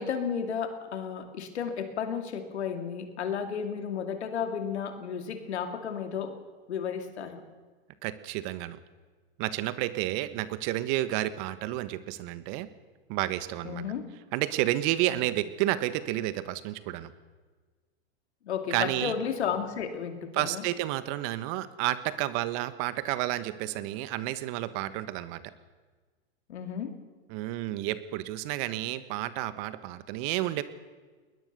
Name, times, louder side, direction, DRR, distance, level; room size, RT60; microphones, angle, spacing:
voice 1, 0.0-6.4 6.7-7.4 13.6-14.1 15.1-15.2 18.4-20.6 26.5-26.9, left 7 dB, 80° left, 7 dB, 2.7 m, -33 dB
voice 2, 8.0-8.8 9.4-12.7 13.1-13.8 14.3-17.1 18.7-19.1 20.3-25.5 27.3-30.6, right 15 dB, 50° right, 14 dB, 1.5 m, -31 dB
20.5 x 20.5 x 6.8 m, 1.4 s
hypercardioid pair, 105°, 33 cm